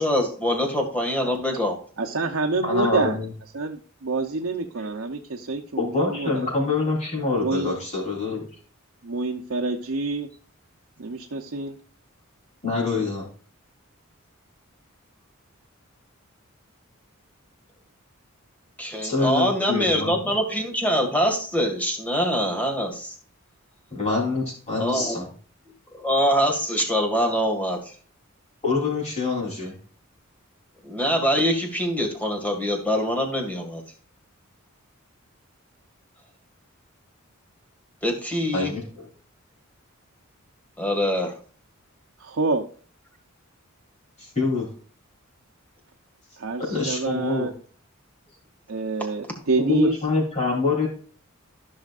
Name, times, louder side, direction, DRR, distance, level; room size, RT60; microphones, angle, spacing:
voice 1, 0.0-1.8 18.8-23.2 24.8-25.2 25.9-27.9 30.8-33.8 38.0-38.7 40.8-41.3, equal, 5° left, 3 dB, 1.9 m, -24 dB
voice 2, 2.0-3.2 3.5-6.5 7.4-7.7 9.0-10.3 11.0-11.8 42.2-42.7 46.4-47.5 48.7-50.0, right 3 dB, 70° right, 2 dB, 0.8 m, -27 dB
voice 3, 2.6-3.3 5.8-8.5 12.6-13.3 19.0-20.2 23.9-25.3 28.6-29.8 38.5-39.1 44.2-44.7 46.7-47.5 49.6-50.9, left 4 dB, 30° left, -2 dB, 3.6 m, -25 dB
14.0 x 6.3 x 2.5 m, 0.44 s
head